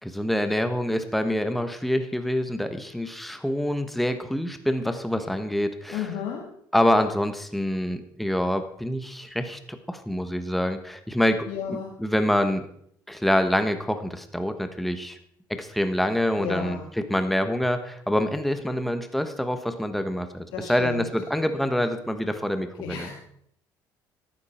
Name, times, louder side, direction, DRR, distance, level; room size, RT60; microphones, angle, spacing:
voice 1, 0.0-6.0 6.7-12.7 13.1-15.2 15.5-16.8 17.1-23.1, left 1 dB, ahead, 8 dB, 1.2 m, -26 dB
voice 2, 5.9-6.5 11.5-12.0 16.4-16.9 20.5-21.1 22.8-23.1, left 7 dB, 85° left, 1 dB, 1.8 m, -33 dB
13.5 x 12.0 x 4.4 m, 0.68 s
cardioid pair, 90°, 8 cm